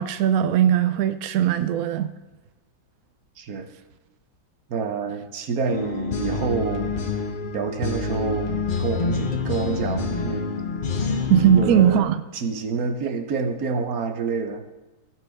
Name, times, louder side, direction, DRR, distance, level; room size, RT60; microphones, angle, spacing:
voice 1, 0.0-2.1 11.3-12.2, right 9 dB, 80° right, 11 dB, 0.8 m, -19 dB
voice 2, 3.4-3.7 4.7-6.9 7.5-10.7 11.4-14.6, right 5 dB, 55° right, 7 dB, 1.3 m, -28 dB
sound 1, 5.7-12.0, left 4 dB, 65° left, 0.5 m, -27 dB
16.5 x 6.1 x 3.5 m, 1.1 s
omnidirectional pair, 2.0 m